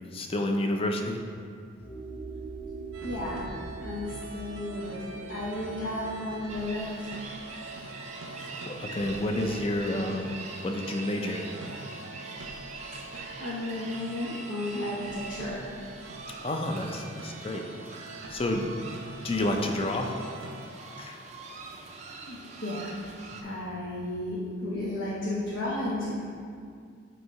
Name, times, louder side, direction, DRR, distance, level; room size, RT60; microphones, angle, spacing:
voice 1, 0.1-1.2 8.7-10.4 10.6-11.5 16.4-17.7 18.3-18.7 19.2-20.1 21.0-21.2 23.3-23.6, left 1 dB, 30° left, 3 dB, 0.4 m, -30 dB
sound 1, 1.8-8.3, right 3 dB, 10° left, 1.2 m, -43 dB
sound 2, 2.9-20.7, right 3 dB, 90° right, 0.7 m, -44 dB
voice 2, 3.0-7.1 12.9-15.7 21.7-21.9 22.3-23.0 23.4-26.2, left 1 dB, 80° left, -7 dB, 0.9 m, -34 dB
sound 3, 6.5-23.4, right 3 dB, 35° right, 0.4 m, -44 dB
7.7 x 2.7 x 4.5 m, 2.2 s
head